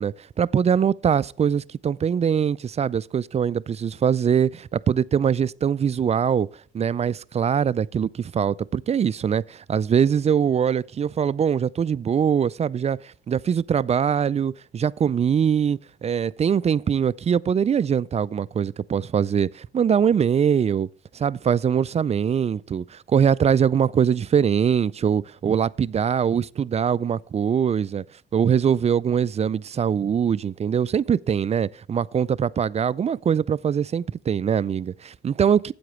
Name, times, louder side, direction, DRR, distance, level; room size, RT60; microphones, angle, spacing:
voice 1, 0.0-6.5 6.7-20.9 21.1-28.0 28.3-35.7, right 7 dB, 35° right, 0.4 m, -22 dB
13.0 x 8.6 x 3.1 m
cardioid pair, 90°, 20 cm